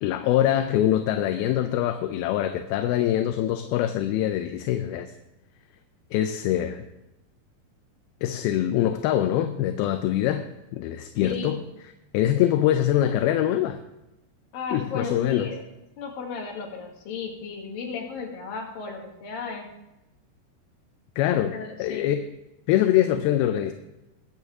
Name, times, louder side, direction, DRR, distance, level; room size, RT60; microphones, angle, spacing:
voice 1, 0.0-5.1 6.1-6.9 8.2-10.5 10.7-11.6 12.1-13.8 14.7-15.5 21.2-22.2 22.7-23.7, left 12 dB, 80° left, 8 dB, 2.5 m, -24 dB
voice 2, 11.2-11.6 14.5-15.6 16.0-19.7 21.5-22.1, left 5 dB, 65° left, 0 dB, 3.5 m, -34 dB
21.0 x 8.2 x 3.6 m, 0.95 s
omnidirectional pair, 4.5 m